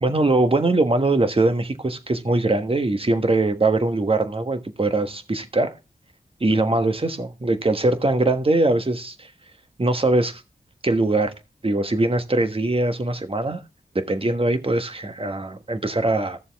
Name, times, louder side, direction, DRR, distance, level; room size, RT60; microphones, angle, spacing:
voice 1, 0.0-5.7 6.4-9.3 9.8-10.4 10.8-11.3 11.6-13.6 13.9-16.4, right 2 dB, 40° right, 1.4 m, -22 dB
14.0 x 6.9 x 3.5 m
cardioid pair, 45°, 15 cm